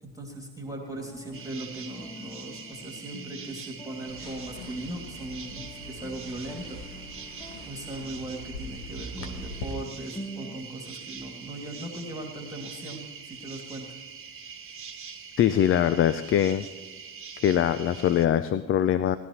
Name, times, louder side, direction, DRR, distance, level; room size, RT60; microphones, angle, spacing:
voice 1, 0.0-6.8 7.6-14.0, right 1 dB, 10° right, 1 dB, 2.3 m, -39 dB
sound 1, 0.7-10.6, right 1 dB, 10° left, 1.0 m, -47 dB
sound 2, 1.3-18.3, right 6 dB, 30° right, 1.4 m, -44 dB
sound 3, 4.1-9.7, left 2 dB, 65° left, 1.4 m, -42 dB
voice 2, 15.4-16.7 17.4-19.2, left 10 dB, 30° left, 13 dB, 0.5 m, -23 dB
19.0 x 12.0 x 3.0 m, 1.2 s
figure-of-eight pair, 55°, 42 cm